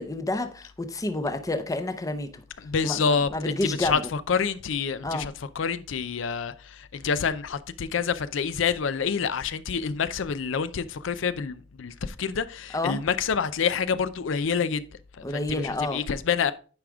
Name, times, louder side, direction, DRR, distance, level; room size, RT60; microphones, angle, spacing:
voice 1, 0.0-2.4 2.8-4.0 5.0-5.3 12.7-13.0 15.2-16.0, left 2 dB, 15° left, 0.6 m, -29 dB
voice 2, 2.6-3.3 3.6-14.8 15.3-16.5, left 6 dB, 70° left, 0.5 m, -27 dB
9.5 x 4.9 x 3.5 m
head